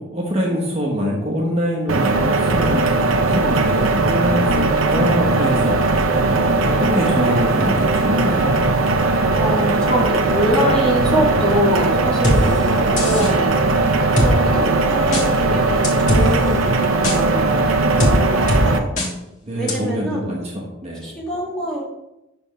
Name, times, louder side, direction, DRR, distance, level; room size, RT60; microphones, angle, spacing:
voice 1, 0.0-8.6 19.4-21.1, equal, 30° right, -2 dB, 1.0 m, -24 dB
sound 1, 1.9-18.8, right 3 dB, 80° right, 0.6 m, -18 dB
voice 2, 9.3-13.5 14.1-17.5 17.9-18.9 19.5-20.3 21.0-21.8, equal, 5° left, -4 dB, 1.5 m, -24 dB
sound 2, 12.2-12.4 13.0-13.3 14.2-14.3 15.1-15.3 15.8-16.2 17.0-17.2 18.0-18.1 18.5-18.6 19.0-19.1 19.7-19.8, left 1 dB, 40° left, 1.4 m, -18 dB
6.8 x 3.4 x 5.5 m, 0.93 s
head